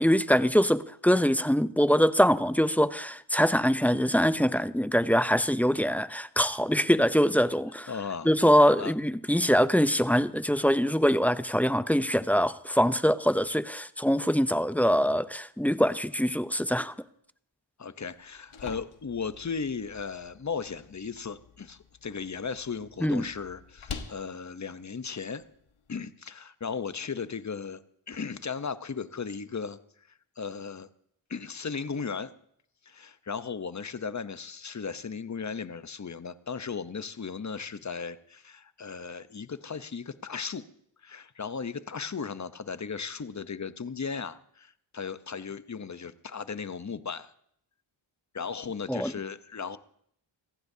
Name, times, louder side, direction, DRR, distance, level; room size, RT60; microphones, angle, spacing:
voice 1, 0.0-7.9 8.2-16.9 23.0-23.2 48.9-49.1, equal, 5° left, 0.6 m, -23 dB
voice 2, 7.9-8.3 8.6-8.9 17.8-25.4 25.9-27.8 28.1-29.8 30.4-30.9 31.3-32.3 32.9-40.6 41.0-47.3 48.3-49.8, left 5 dB, 35° left, 0.9 m, -36 dB
sound 1, 18.1-26.0, left 6 dB, 75° left, 1.4 m, -47 dB
26.0 x 15.0 x 2.8 m
cardioid pair, 45°, 49 cm